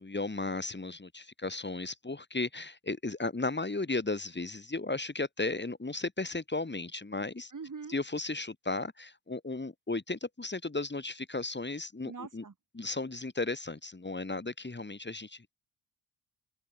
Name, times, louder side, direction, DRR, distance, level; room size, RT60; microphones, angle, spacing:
voice 1, 0.0-7.5 7.9-12.4 12.7-15.4, left 3 dB, 25° left, 6.2 m, -35 dB
voice 2, 7.5-8.0 12.0-12.5, right 5 dB, 40° right, 7.3 m, -43 dB
open air
cardioid pair, 70°, 45 cm